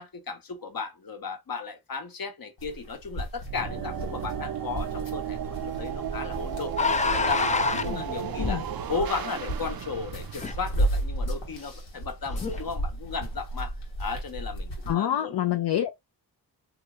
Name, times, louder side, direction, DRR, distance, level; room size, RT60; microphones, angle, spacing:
voice 1, 0.0-6.8 7.1-8.6 8.9-15.4, left 4 dB, 55° left, 1.0 m, -35 dB
sound 1, 2.6-14.9, right 1 dB, 85° left, 1.2 m, -34 dB
sound 2, 3.4-11.6, right 9 dB, 55° right, 0.5 m, -35 dB
sound 3, 6.8-8.8 10.4-10.5 12.3-12.7, left 4 dB, 20° left, 0.4 m, -27 dB
voice 2, 7.7-8.6 14.9-15.9, left 11 dB, 70° left, 0.6 m, -28 dB
2.9 x 2.4 x 2.9 m
cardioid pair, 40°, 42 cm